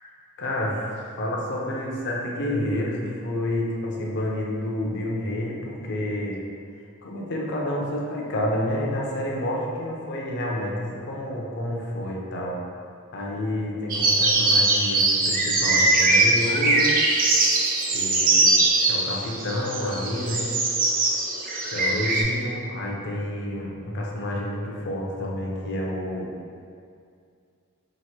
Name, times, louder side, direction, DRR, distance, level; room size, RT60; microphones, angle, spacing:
voice 1, 0.4-6.4 7.0-12.6 13.1-17.0 17.9-18.5 18.9-20.5 21.7-26.3, left 1 dB, 50° left, -3 dB, 0.6 m, -29 dB
sound 1, 13.9-22.2, right 2 dB, 40° right, 0.4 m, -21 dB
2.9 x 2.6 x 4.3 m, 2.4 s
head